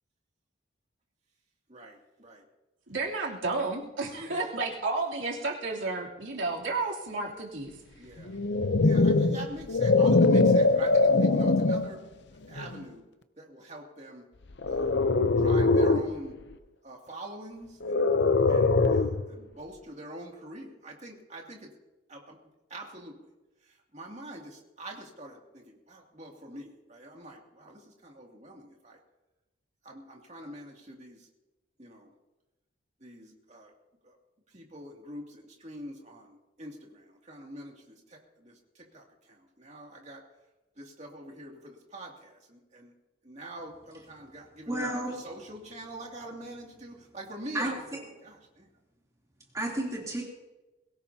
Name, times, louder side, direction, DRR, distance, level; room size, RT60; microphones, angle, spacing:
voice 1, 1.7-2.4 4.2-4.5 8.0-8.3 8.8-12.0 12.5-13.0 13.4-14.3 14.7-14.9 15.4-16.3 16.8-18.1 18.5-21.7 22.1-22.4 22.7-23.3 23.7-29.0 29.8-31.3 31.8-32.1 33.0-33.7 34.0-34.2 34.5-40.2 40.8-42.9 43.2-48.7, right 1 dB, 35° right, 0 dB, 2.6 m, -44 dB
voice 2, 2.9-7.8, right 3 dB, 90° right, -2 dB, 3.2 m, -32 dB
sound 1, 8.3-11.9 12.6-12.8 14.6-16.1 17.8-19.3, left 3 dB, 65° left, 0.7 m, -22 dB
voice 3, 44.7-45.1 47.5-48.0 49.5-50.3, right 1 dB, 15° right, -3 dB, 3.1 m, -32 dB
22.5 x 17.5 x 2.8 m, 1.0 s
head